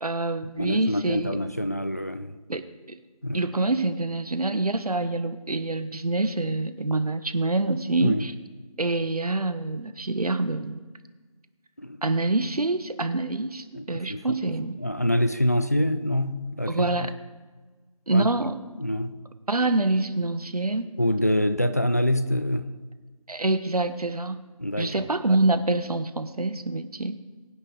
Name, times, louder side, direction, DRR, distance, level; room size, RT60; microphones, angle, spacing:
voice 1, 0.0-1.4 2.5-3.0 3.3-8.3 8.8-10.8 12.0-14.8 16.7-17.1 18.1-18.6 19.5-21.0 23.3-24.4 24.8-27.2, right 2 dB, 85° right, 11 dB, 1.3 m, -26 dB
voice 2, 0.6-2.4 3.2-3.4 8.0-8.3 11.8-12.0 13.7-17.1 18.1-18.3 18.8-19.2 21.0-22.7 24.6-25.1, left 1 dB, 25° left, 11 dB, 0.5 m, -26 dB
22.0 x 9.9 x 4.0 m, 1.4 s
figure-of-eight pair, 170°, 19 cm